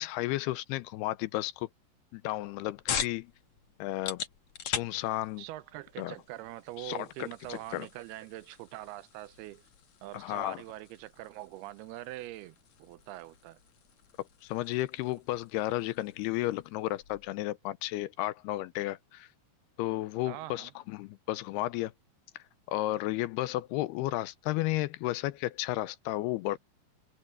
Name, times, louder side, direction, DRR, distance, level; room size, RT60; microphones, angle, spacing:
voice 1, 0.0-1.7 2.1-3.3 3.8-4.2 4.6-5.4 6.0-6.1 6.8-7.9 10.1-10.6 14.4-19.3 19.8-21.9 22.7-26.6, left 16 dB, 80° left, 2.6 m, -33 dB
sound 1, 2.2-17.4, left 8 dB, 50° left, 2.6 m, -43 dB
voice 2, 5.4-9.6 10.0-13.6 20.3-20.7, right 16 dB, 80° right, 2.5 m, -43 dB
omnidirectional pair, 4.8 m